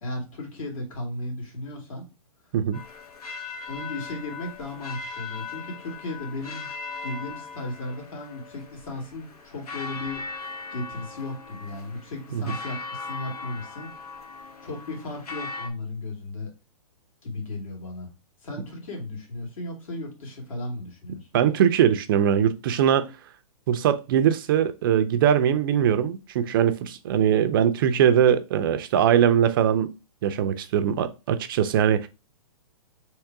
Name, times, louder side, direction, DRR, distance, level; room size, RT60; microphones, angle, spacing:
voice 1, 0.0-2.1 3.7-6.7 7.0-10.2 10.7-13.9 14.6-16.5 17.2-18.1 18.4-21.3, left 2 dB, 65° left, 2.4 m, -35 dB
sound 1, 2.7-15.7, left 4 dB, 85° left, 1.1 m, -39 dB
voice 2, 21.3-23.1 23.7-29.9 30.2-32.1, right 9 dB, 35° right, 0.4 m, -21 dB
3.6 x 2.9 x 4.6 m
hypercardioid pair, 150°, 19 cm